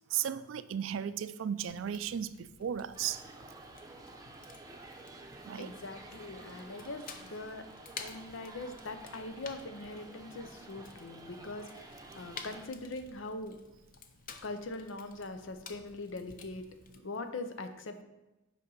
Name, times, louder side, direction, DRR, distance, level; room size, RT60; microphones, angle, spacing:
voice 1, 0.1-3.2 5.1-5.2 5.5-5.7, right 9 dB, 85° right, 15 dB, 0.4 m, -35 dB
Fire, 1.7-17.0, left 5 dB, 45° left, 0.6 m, -52 dB
sound 1, 2.9-12.7, right 2 dB, 20° right, 0.7 m, -51 dB
voice 2, 5.5-7.7 8.0-13.6 14.4-16.6 17.0-18.0, left 2 dB, 85° left, 8 dB, 0.7 m, -42 dB
8.4 x 5.4 x 3.9 m, 1.0 s
head